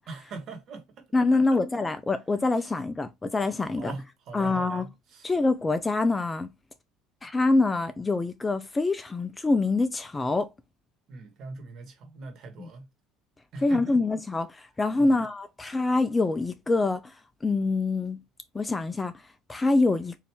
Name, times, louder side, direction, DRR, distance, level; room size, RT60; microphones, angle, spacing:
voice 1, 0.1-1.0 2.6-2.7 3.8-5.3 11.1-12.9 13.5-14.0 15.0-15.2, right 3 dB, 50° right, 1.3 m, -41 dB
voice 2, 1.1-3.9 4.3-4.9 5.2-6.5 7.2-10.5 12.6-12.7 13.6-17.1 17.4-18.2 18.5-19.1 19.5-20.1, left 3 dB, 15° left, 0.4 m, -25 dB
4.5 x 2.6 x 3.4 m
cardioid pair, 130°, 0 cm